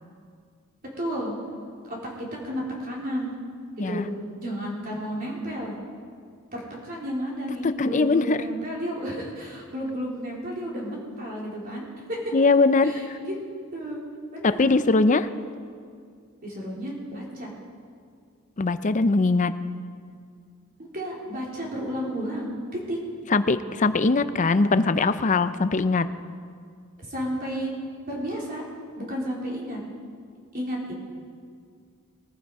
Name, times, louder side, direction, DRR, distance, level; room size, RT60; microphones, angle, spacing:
voice 1, 1.0-1.3 1.9-3.4 3.9-4.1 4.4-5.7 6.5-12.3 12.8-13.3 13.7-14.0 14.3-14.8 16.4-17.5 20.8-23.0 27.1-27.7 28.1-28.6 29.0-29.8 30.5-30.8, equal, 45° right, -3 dB, 3.9 m, -32 dB
voice 2, 3.8-4.1 7.6-8.4 12.3-13.2 14.4-15.3 18.6-19.5 23.3-26.1, left 3 dB, 35° left, 12 dB, 0.5 m, -21 dB
19.5 x 14.5 x 4.8 m, 2.2 s
head